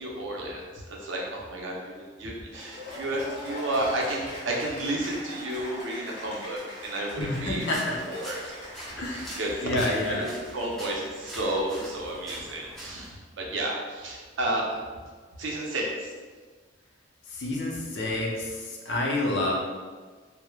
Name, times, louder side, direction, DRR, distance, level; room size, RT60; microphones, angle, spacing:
voice 1, 0.0-7.7 8.1-8.4 9.1-14.6 15.4-16.1, right 1 dB, 80° right, -2 dB, 0.5 m, -32 dB
Cheering / Applause, 2.5-12.1, left 1 dB, 25° right, 0.9 m, -41 dB
voice 2, 7.2-8.0 9.0-10.3 17.3-19.6, left 1 dB, 60° left, -2 dB, 0.5 m, -29 dB
sound 1, 7.6-13.1, equal, ahead, 0.6 m, -44 dB
3.1 x 2.0 x 2.2 m, 1.4 s
head